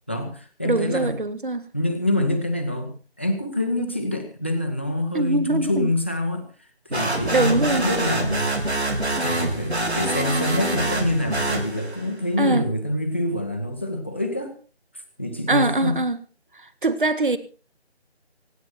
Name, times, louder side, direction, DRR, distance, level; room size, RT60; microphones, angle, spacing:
voice 1, 0.1-1.2 1.7-14.5 15.2-16.0, left 1 dB, 10° left, 0.9 m, -26 dB
voice 2, 0.6-1.7 5.1-5.9 7.3-7.9 12.4-12.7 15.5-16.2 16.6-17.4, right 2 dB, 50° right, 1.8 m, -22 dB
sound 1, 6.9-12.1, right 1 dB, 75° right, 4.5 m, -26 dB
25.5 x 9.4 x 4.3 m
figure-of-eight pair, 165°, 33 cm